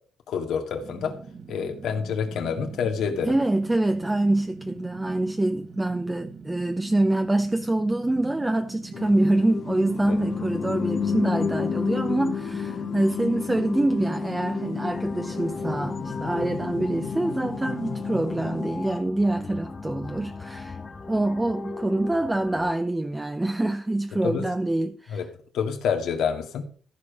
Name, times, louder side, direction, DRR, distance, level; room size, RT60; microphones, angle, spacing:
voice 1, 0.3-1.2 1.5-3.3 10.1-10.2 24.2-24.5 25.1-25.3 25.5-26.7, left 6 dB, 75° left, 2.3 m, -27 dB
Fire, 0.8-18.3, right 5 dB, 45° right, 1.6 m, -43 dB
voice 2, 3.2-20.8 21.1-25.2, right 2 dB, 15° right, 0.8 m, -25 dB
sound 1, 8.9-19.1, left 6 dB, 50° left, 1.2 m, -31 dB
sound 2, 14.9-22.7, left 4 dB, 30° left, 1.8 m, -38 dB
14.0 x 5.1 x 6.5 m
cardioid pair, 90°, 0 cm